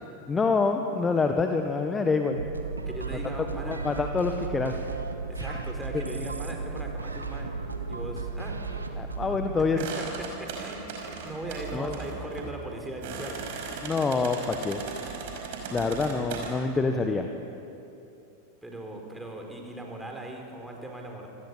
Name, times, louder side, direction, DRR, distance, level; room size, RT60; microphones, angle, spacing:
voice 1, 0.3-2.4 3.6-4.8 5.4-5.6 9.0-9.8 11.7-12.0 13.8-14.8 15.7-17.3, left 4 dB, 15° left, 6 dB, 1.4 m, -26 dB
sound 1, 2.3-9.7, right 4 dB, 80° right, 1.9 m, -35 dB
voice 2, 2.9-3.8 5.3-7.6 7.9-8.6 10.2-13.5 18.6-21.3, right 1 dB, 5° right, 1 dB, 4.6 m, -39 dB
sound 2, 9.8-16.5, right 5 dB, 50° right, 5.0 m, -37 dB
27.0 x 19.0 x 8.6 m, 2.8 s
figure-of-eight pair, 90°, 0 cm